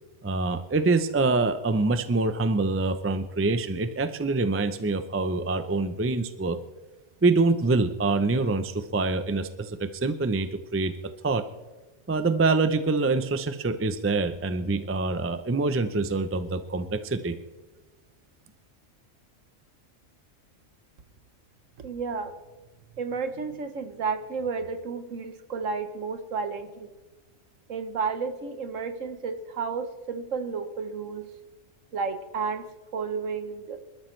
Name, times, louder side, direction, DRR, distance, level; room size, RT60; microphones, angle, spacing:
voice 1, 0.2-6.6 7.2-10.9 11.2-11.4 12.1-17.4, right 3 dB, 20° right, 10 dB, 0.3 m, -25 dB
voice 2, 21.8-22.3 23.0-26.9 27.7-31.2 31.9-32.6 32.9-33.8, right 5 dB, 70° right, 9 dB, 1.4 m, -32 dB
26.5 x 13.0 x 3.3 m, 1.2 s
omnidirectional pair, 1.4 m